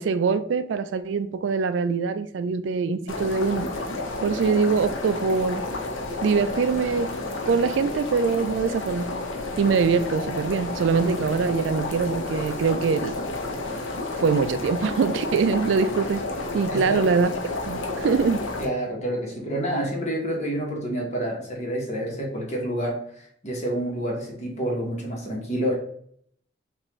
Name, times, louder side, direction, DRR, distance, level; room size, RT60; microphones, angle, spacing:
voice 1, 0.0-3.7 4.2-5.7 6.2-7.1 7.5-9.1 9.6-13.1 14.2-16.3 16.5-17.3 17.7-18.5, right 5 dB, 75° right, 0.3 m, -23 dB
sound 1, 3.1-18.7, left 2 dB, 90° left, 0.8 m, -31 dB
voice 2, 16.7-17.1 18.6-25.7, right 1 dB, 35° left, 1.2 m, -28 dB
5.5 x 2.6 x 3.1 m
head